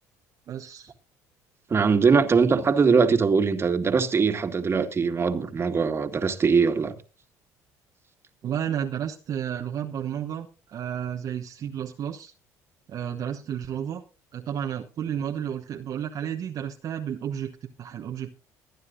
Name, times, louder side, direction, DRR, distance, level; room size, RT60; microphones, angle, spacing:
voice 1, 0.5-0.9 8.4-12.3 12.9-14.0 14.3-18.3, right 9 dB, 55° right, 1.1 m, -32 dB
voice 2, 1.7-6.9, right 5 dB, 35° right, 1.8 m, -21 dB
23.5 x 9.5 x 2.6 m
supercardioid pair, 75°, 7 cm